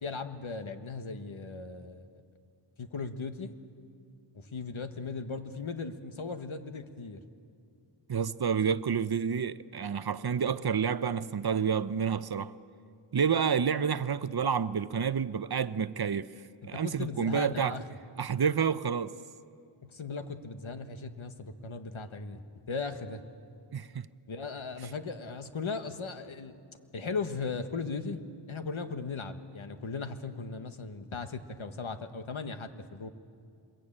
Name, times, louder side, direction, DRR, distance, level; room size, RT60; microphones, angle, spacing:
voice 1, 0.0-2.2 2.8-3.6 4.3-7.2 16.7-17.8 19.8-22.4 22.7-23.2 24.3-26.6 26.9-33.1, left 4 dB, 70° left, 1.5 m, -37 dB
voice 2, 8.1-12.6 13.1-16.3 16.7-17.8 18.2-19.1 23.7-24.1, right 7 dB, 50° right, 0.7 m, -29 dB
26.5 x 22.0 x 8.8 m
wide cardioid pair, 65°, 50 cm